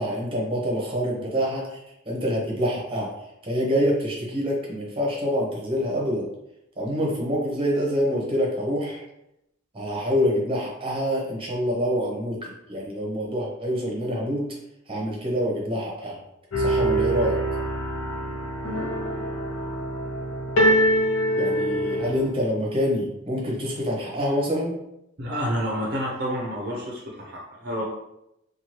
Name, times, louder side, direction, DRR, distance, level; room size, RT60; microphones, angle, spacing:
voice 1, 0.0-1.8 2.1-3.1 3.4-6.3 6.8-9.0 9.7-14.5 14.9-16.2 16.6-17.4 21.4-24.8, equal, 30° right, -3 dB, 0.8 m, -26 dB
sound 1, 16.5-22.3, right 1 dB, 85° left, 0.6 m, -24 dB
voice 2, 25.2-27.8, equal, 55° right, -3 dB, 0.6 m, -29 dB
2.8 x 2.3 x 3.0 m, 0.83 s
head